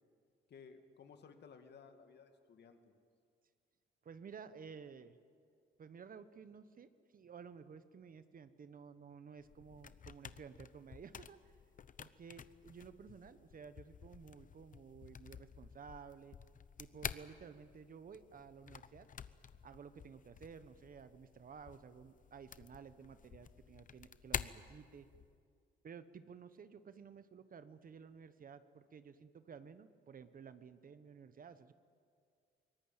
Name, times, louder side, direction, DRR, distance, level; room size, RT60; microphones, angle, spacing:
voice 1, 0.5-3.0, left 5 dB, 60° left, 6 dB, 2.1 m, -58 dB
voice 2, 4.0-5.2 5.8-11.6 12.0-16.4 16.8-19.1 19.6-25.1 25.8-31.7, right 6 dB, 45° right, 12 dB, 1.1 m, -54 dB
sound 1, 9.4-25.4, left 7 dB, 40° left, 0.8 m, -50 dB
23.5 x 19.0 x 8.9 m, 2.2 s
cardioid pair, 90°, 20 cm